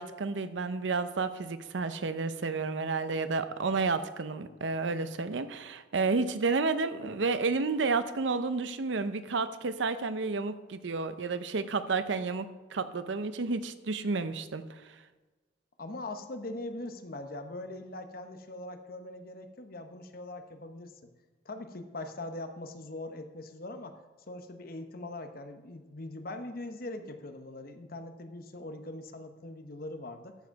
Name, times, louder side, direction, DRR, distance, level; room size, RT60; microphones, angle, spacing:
voice 1, 0.0-14.6, right 4 dB, 85° right, 12 dB, 0.6 m, -31 dB
voice 2, 15.8-21.1 21.4-24.0 24.3-30.4, left 2 dB, 50° left, 8 dB, 0.9 m, -41 dB
13.5 x 4.9 x 4.6 m, 1.3 s
head